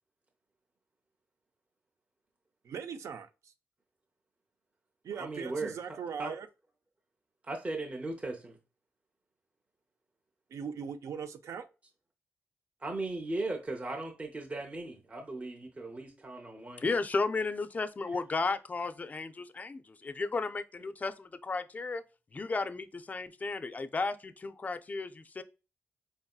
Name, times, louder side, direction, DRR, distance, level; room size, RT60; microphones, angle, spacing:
voice 1, 2.7-3.3 5.0-6.5 10.5-11.7, right 7 dB, 75° right, 0.5 m, -39 dB
voice 2, 5.1-6.3 7.4-8.6 12.8-17.0, right 2 dB, 25° right, 0.6 m, -38 dB
voice 3, 16.8-22.0 22.3-25.4, left 3 dB, 30° left, 0.4 m, -34 dB
4.3 x 2.7 x 2.3 m
cardioid pair, 85°, 5 cm